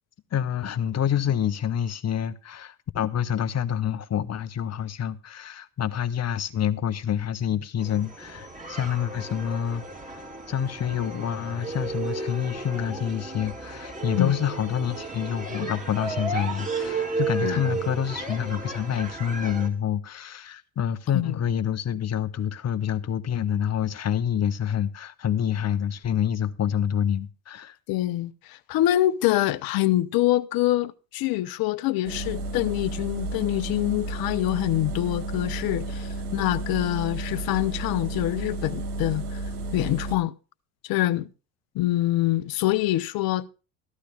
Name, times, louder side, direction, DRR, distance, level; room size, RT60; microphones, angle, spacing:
voice 1, 0.3-9.8 10.5-27.8, left 9 dB, 35° left, 1.2 m, -27 dB
sound 1, 7.8-19.7, right 3 dB, 20° right, 3.5 m, -33 dB
voice 2, 27.9-39.4 39.7-40.3 40.8-41.3 41.7-43.5, left 15 dB, 55° left, 0.9 m, -25 dB
sound 2, 32.0-40.2, right 2 dB, 90° right, 1.5 m, -32 dB
13.5 x 11.5 x 3.4 m
hypercardioid pair, 70°, 44 cm